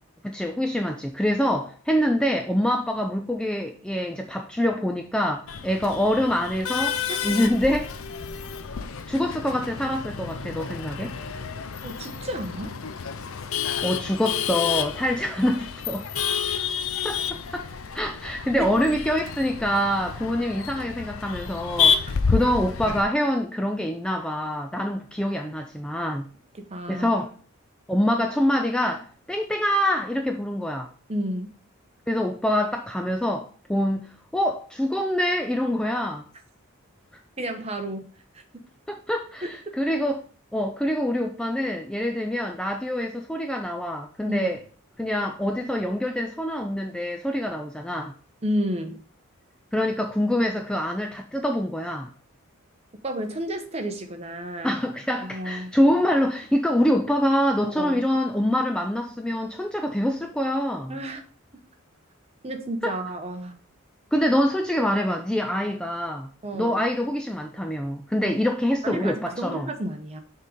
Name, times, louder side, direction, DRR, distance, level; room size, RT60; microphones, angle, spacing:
voice 1, 0.2-7.9 9.1-11.1 13.8-16.1 17.0-17.7 17.9-26.3 26.9-27.3 27.9-30.9 32.1-36.2 38.9-40.2 40.5-44.6 45.0-48.1 49.7-52.1 54.6-61.0 62.8-63.0 64.1-66.3 66.5-69.7, equal, 5° left, 0.3 m, -25 dB
Male speech man speaking / Laughter / Chatter, 5.5-23.0, left 6 dB, 70° left, 0.6 m, -29 dB
voice 2, 11.8-12.7 16.1-16.3 18.6-18.7 26.7-27.1 31.1-31.5 37.4-38.0 39.4-39.5 44.3-44.5 48.4-49.0 53.0-54.8 55.2-55.7 57.6-58.0 60.9-61.2 62.4-63.6 66.4-66.8 68.2-68.4 68.8-70.2, right 1 dB, 30° right, 0.8 m, -31 dB
6.6 x 3.7 x 4.9 m
head